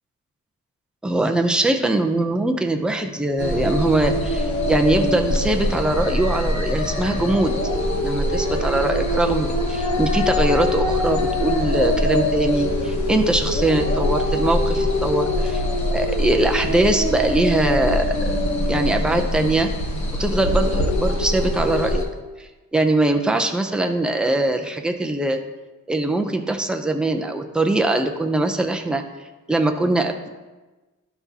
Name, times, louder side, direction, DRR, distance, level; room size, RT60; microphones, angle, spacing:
voice 1, 1.0-7.5 8.0-15.6 15.9-18.4 18.7-19.7 20.2-22.1 22.4-25.4 25.9-29.0 29.5-30.3, right 2 dB, 5° right, 4 dB, 0.4 m, -22 dB
sound 1, 3.4-22.0, left 1 dB, 50° left, 1.0 m, -23 dB
12.0 x 6.0 x 2.7 m, 1.2 s
wide cardioid pair, 175°, 35 cm